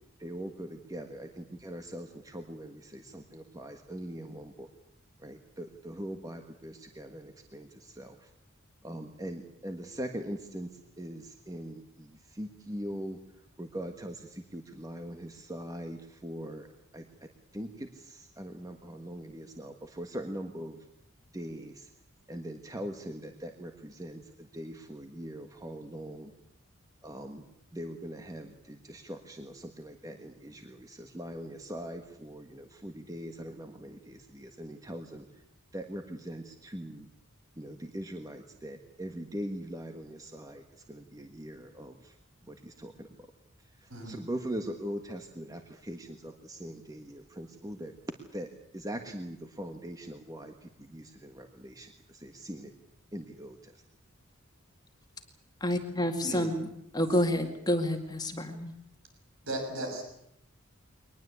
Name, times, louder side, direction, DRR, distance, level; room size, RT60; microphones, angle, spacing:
voice 1, 0.2-4.7 5.2-8.3 8.8-13.2 13.6-16.7 16.9-20.8 21.3-21.9 22.3-26.3 27.0-27.4 27.7-35.2 35.7-37.1 37.5-42.1 42.5-43.1 43.6-47.9 48.3-48.5 48.7-52.7 53.1-53.8, equal, 15° right, 5 dB, 1.4 m, -41 dB
voice 2, 55.6-56.7 56.9-58.7, left 1 dB, 20° left, 5 dB, 2.0 m, -29 dB
voice 3, 59.5-60.0, right 1 dB, 70° right, 4 dB, 6.4 m, -35 dB
23.0 x 20.0 x 8.3 m, 0.79 s
head